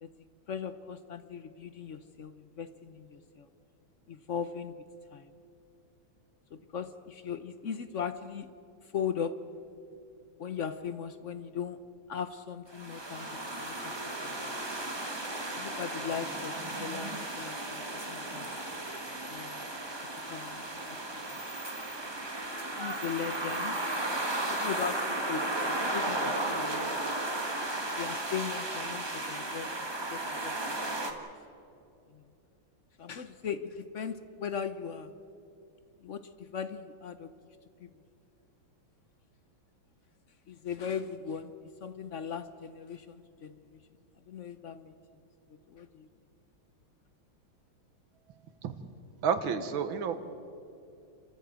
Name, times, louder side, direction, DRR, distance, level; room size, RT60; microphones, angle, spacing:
voice 1, 0.5-3.5 4.1-4.7 5.1-5.3 6.5-8.5 8.9-9.4 10.4-11.8 12.1-13.9 14.2-14.5 15.5-18.6 19.3-19.6 20.3-21.2 22.8-23.8 24.5-27.0 28.0-29.7 30.0-30.5 30.8-31.2 32.1-32.2 33.0-35.1 36.0-37.3 37.8-37.9 40.5-41.5 41.8-43.8 44.3-44.9 45.5-46.1, left 7 dB, 60° left, 11 dB, 0.8 m, -38 dB
sound 1, 12.7-31.1, right 2 dB, 15° right, 1.4 m, -35 dB
voice 2, 49.2-50.2, right 6 dB, 80° right, 10 dB, 2.0 m, -30 dB
29.5 x 14.0 x 8.1 m, 2.6 s
omnidirectional pair, 2.2 m